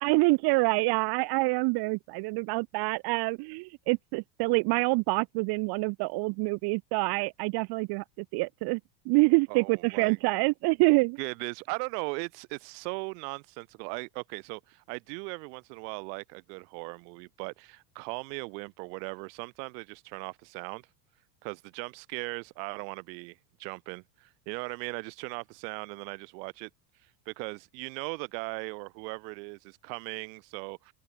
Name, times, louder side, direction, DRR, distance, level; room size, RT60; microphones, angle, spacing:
voice 1, 0.0-8.8 9.1-11.2, right 27 dB, 50° right, 0.5 m, -26 dB
voice 2, 9.5-10.2 11.2-20.9 21.4-26.7 27.3-30.9, right 33 dB, 75° right, 5.3 m, -38 dB
cardioid pair, 140°, 50 cm